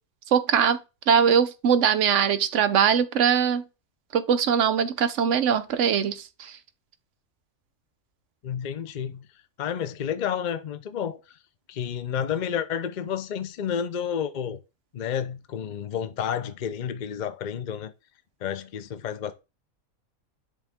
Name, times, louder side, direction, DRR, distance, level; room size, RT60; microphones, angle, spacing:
voice 1, 0.3-0.8 1.1-3.6 4.1-6.5, right 7 dB, 60° right, 1.0 m, -21 dB
voice 2, 8.4-9.2 9.6-11.4 11.7-14.6 14.9-17.9 18.4-19.3, left 8 dB, 60° left, 0.4 m, -30 dB
10.5 x 3.8 x 3.5 m
omnidirectional pair, 1.5 m